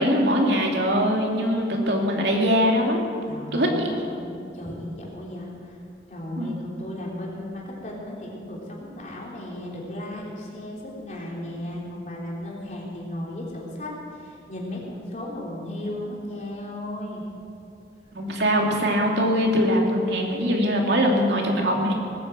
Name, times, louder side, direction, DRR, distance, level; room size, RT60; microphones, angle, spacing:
voice 1, 0.0-3.1 3.5-4.0 6.4-6.5 18.1-21.9, equal, 80° right, 0 dB, 2.7 m, -22 dB
voice 2, 3.3-5.8 6.1-13.9 14.2-17.2, left 1 dB, 40° left, -4 dB, 3.6 m, -35 dB
19.5 x 9.7 x 7.6 m, 2.5 s
head